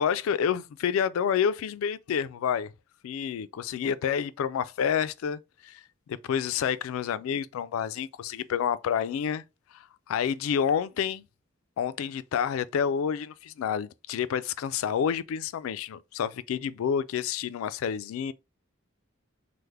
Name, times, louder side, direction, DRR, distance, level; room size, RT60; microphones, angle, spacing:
voice 1, 0.0-2.7 3.0-5.8 6.1-9.4 9.7-11.2 11.8-18.3, left 7 dB, 75° left, 0.3 m, -29 dB
3.4 x 2.1 x 3.2 m
head